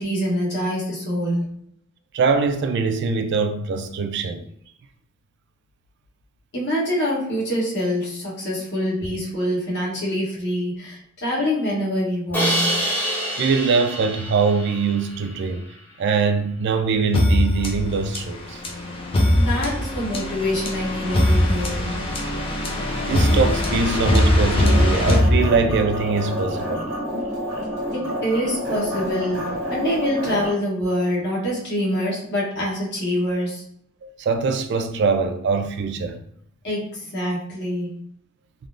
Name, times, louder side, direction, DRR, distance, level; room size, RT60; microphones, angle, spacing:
voice 1, 0.0-1.4 6.5-12.7 19.3-21.9 27.9-33.6 36.6-37.9, equal, 55° left, 1.1 m, -25 dB
voice 2, 2.1-4.4 13.4-15.6 16.0-18.6 23.1-26.9 34.0-36.2, right 4 dB, 55° right, 0.3 m, -22 dB
Crash cymbal, 12.3-15.4, equal, 10° left, 0.9 m, -26 dB
sound 1, 17.1-26.0, left 1 dB, 25° left, 0.5 m, -21 dB
sound 2, 24.5-30.5, equal, 70° right, 1.2 m, -29 dB
3.4 x 2.1 x 2.5 m
head